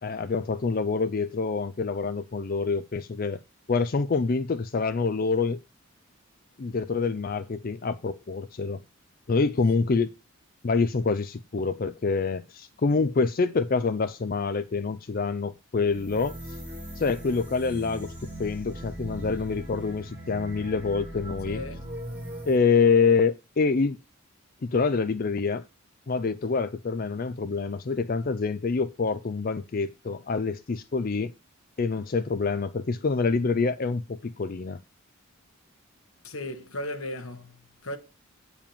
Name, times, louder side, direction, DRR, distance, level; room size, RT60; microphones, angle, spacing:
voice 1, 0.0-3.4 3.7-5.6 6.6-8.8 9.3-10.1 10.6-16.6 17.0-18.1 18.4-21.6 22.5-24.0 24.6-25.7 26.1-31.3 31.8-34.8, left 4 dB, 40° left, 0.4 m, -26 dB
sound 1, 15.9-22.6, right 1 dB, 5° right, 3.4 m, -39 dB
voice 2, 21.4-21.8 36.2-38.0, left 1 dB, 80° left, 1.6 m, -36 dB
8.9 x 5.0 x 6.8 m
head